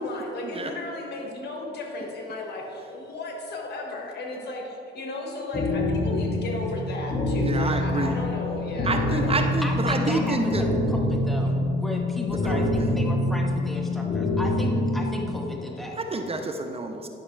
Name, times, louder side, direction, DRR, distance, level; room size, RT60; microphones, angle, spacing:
voice 1, 0.0-9.6, left 2 dB, 55° left, 0 dB, 1.7 m, -34 dB
sound 1, 5.5-15.5, left 2 dB, 35° left, 1.1 m, -26 dB
voice 2, 7.4-8.2 8.8-10.6 12.4-12.9 16.0-17.1, right 3 dB, 30° right, 4 dB, 0.6 m, -28 dB
voice 3, 9.6-16.0, left 1 dB, ahead, 0 dB, 1.0 m, -34 dB
10.5 x 6.2 x 3.3 m, 2.9 s
cardioid pair, 90°, 20 cm